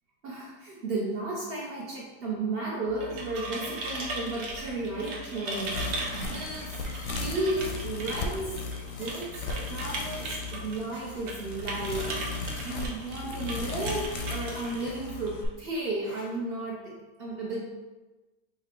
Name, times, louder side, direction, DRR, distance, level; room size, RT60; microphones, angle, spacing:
voice 1, 0.2-6.8 7.2-8.5 9.0-16.9 17.2-17.6, right 2 dB, 55° right, -4 dB, 0.7 m, -34 dB
sound 1, 2.8-15.5, right 1 dB, 90° right, 1.4 m, -38 dB
sound 2, 5.6-15.5, left 3 dB, 85° left, 1.2 m, -37 dB
sound 3, 6.0-6.5 6.9-7.3 7.6-8.2 8.6-8.7 8.9-9.4 9.8-10.3 10.9-11.3 11.9-13.0 13.2-14.1 14.6-15.3 16.0-16.4, equal, 15° right, 0.5 m, -51 dB
5.4 x 2.2 x 3.6 m, 1.2 s
omnidirectional pair, 1.7 m